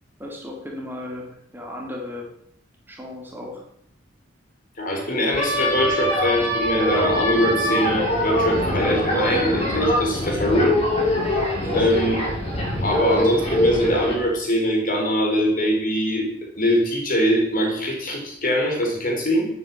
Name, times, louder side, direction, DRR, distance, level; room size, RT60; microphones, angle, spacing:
voice 1, 0.2-2.3 2.9-3.6 11.6-11.8, left 1 dB, 10° right, 0 dB, 2.9 m, -35 dB
voice 2, 4.8-10.8 11.7-12.2 12.8-16.3 16.6-19.5, equal, 45° left, 1 dB, 4.9 m, -22 dB
sound 1, 5.3-14.1, left 1 dB, 30° left, 6.4 m, -23 dB
11.5 x 9.6 x 8.9 m, 0.71 s
head